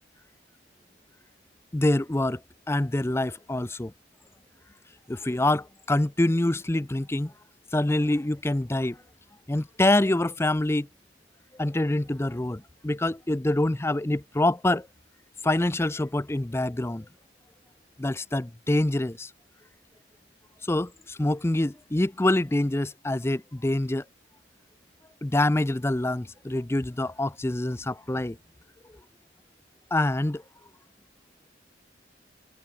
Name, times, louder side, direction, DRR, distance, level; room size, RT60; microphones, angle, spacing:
voice 1, 1.7-2.4 2.7-3.9 5.1-7.3 7.7-9.0 9.5-10.9 11.6-14.9 15.4-17.1 18.0-19.3 20.6-24.0 25.2-28.4 29.9-30.4, left 1 dB, 15° left, 0.5 m, -25 dB
head